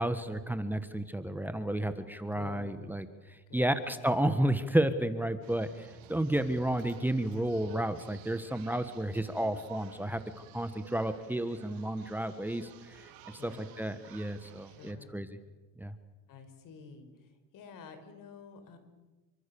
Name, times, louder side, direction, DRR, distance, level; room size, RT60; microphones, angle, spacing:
voice 1, 0.0-10.2 10.5-13.1 13.4-15.3 15.8-15.9, right 1 dB, 5° right, 10 dB, 1.4 m, -32 dB
voice 2, 2.3-2.7 3.5-3.9 13.3-13.8 14.7-15.2 16.3-18.8, left 5 dB, 65° left, 9 dB, 5.1 m, -50 dB
sound 1, 5.4-14.9, right 11 dB, 85° right, 2.7 m, -54 dB
28.0 x 24.5 x 7.0 m, 1.2 s
cardioid pair, 120°, 34 cm